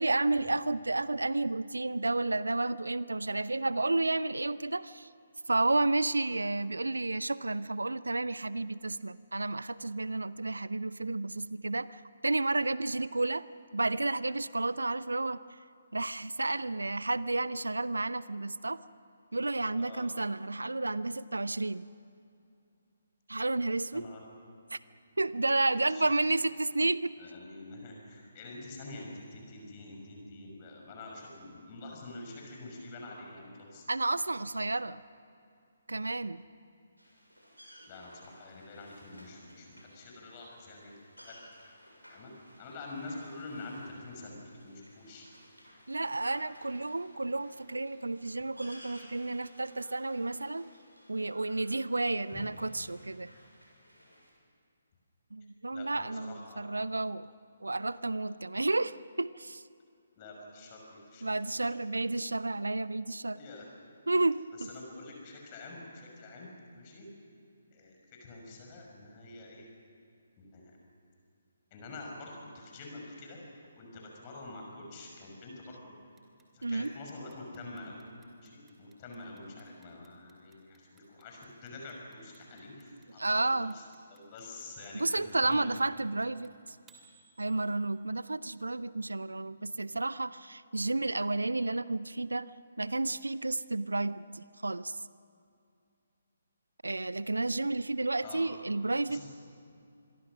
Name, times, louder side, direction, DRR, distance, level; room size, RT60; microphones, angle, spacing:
voice 1, 0.0-5.1 5.5-13.5 13.7-15.4 15.9-18.8 19.3-21.9 23.3-24.1 24.7-24.8 25.2-27.1 33.9-35.0 35.9-36.4 45.9-50.7 51.1-53.3 55.3-57.3 57.6-59.6 61.2-63.4 64.1-64.7 76.6-76.9 83.2-83.7 84.9-86.8 87.4-92.5 92.8-95.0 96.8-99.3, right 2 dB, 70° right, 18 dB, 0.6 m, -31 dB
voice 2, 25.6-26.1 27.2-33.8 37.9-40.9 41.3-41.4 42.1-42.3 42.6-45.2 52.3-52.4 55.7-56.6 60.2-61.2 61.6-61.7 63.3-63.6 64.5-67.1 67.7-69.7 70.4-70.8 71.7-73.4 73.8-75.9 76.5-78.0 78.3-83.2 83.7-83.8 84.1-85.8 98.2-98.4 99.1-99.3, left 2 dB, 25° left, 0 dB, 6.1 m, -46 dB
sound 1, 37.0-54.3, equal, 90° right, 7.1 m, -57 dB
Clock, 76.2-88.1, right 6 dB, 10° right, 2.6 m, -65 dB
26.5 x 23.0 x 6.2 m, 2.5 s
figure-of-eight pair, 140°, 0 cm